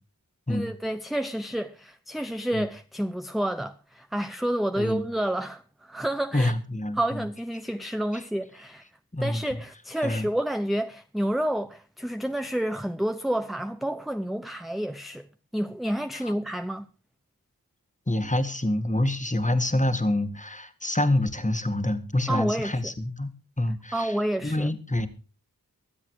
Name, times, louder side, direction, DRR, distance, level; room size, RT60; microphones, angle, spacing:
voice 1, 0.5-6.5 6.9-8.8 9.2-15.3 15.5-16.9 22.3-22.8 23.9-24.7, right 1 dB, ahead, 0.8 m, -29 dB
voice 2, 6.3-7.2 9.1-9.4 10.0-10.3 16.2-16.3 18.1-23.3 23.6-24.1 24.4-25.1, left 1 dB, 20° left, 1.8 m, -26 dB
23.5 x 8.2 x 4.8 m
wide cardioid pair, 50°, 36 cm